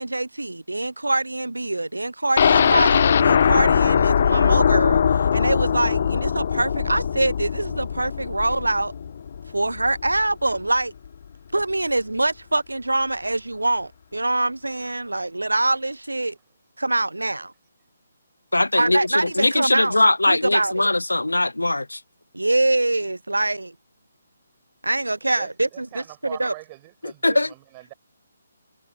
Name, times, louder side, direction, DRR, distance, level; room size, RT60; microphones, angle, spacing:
voice 1, 0.0-8.9 9.5-10.9 11.5-16.3 16.8-17.5 18.7-20.0 20.3-20.9 22.3-23.7 24.8-26.5, right 2 dB, 80° right, 0.5 m, -24 dB
sound 1, 2.4-10.2 10.6-10.7 11.0-11.1, left 7 dB, 45° left, 0.8 m, -20 dB
voice 2, 18.5-22.0 27.0-27.5, left 2 dB, 80° left, 0.3 m, -21 dB
voice 3, 25.3-27.9, right 21 dB, 25° right, 6.1 m, -42 dB
figure-of-eight pair, 140°, 0 cm